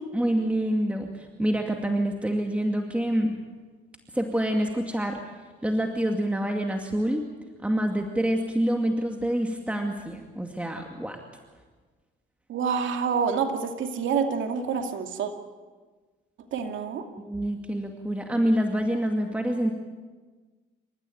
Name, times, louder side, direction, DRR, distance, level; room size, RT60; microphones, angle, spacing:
voice 1, 0.1-3.4 4.1-5.2 5.6-7.3 7.6-11.2 17.2-19.7, right 1 dB, 5° right, 2 dB, 2.3 m, -26 dB
voice 2, 12.5-15.3 16.5-17.0, right 6 dB, 75° right, 4 dB, 2.6 m, -27 dB
28.0 x 14.5 x 9.3 m, 1.4 s
cardioid pair, 90°, 20 cm